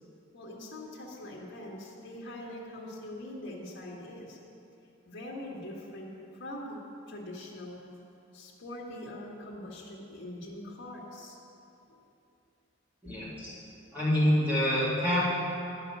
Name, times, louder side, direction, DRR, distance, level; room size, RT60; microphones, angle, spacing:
voice 1, 0.3-4.4 5.0-6.1 6.4-6.8 7.1-7.8 8.3-11.4 11.9-12.0, left 1 dB, 65° left, -4 dB, 1.6 m, -42 dB
voice 2, 13.0-13.5 13.9-15.2, equal, 10° right, -10 dB, 2.2 m, -26 dB
10.5 x 5.7 x 6.7 m, 2.8 s
head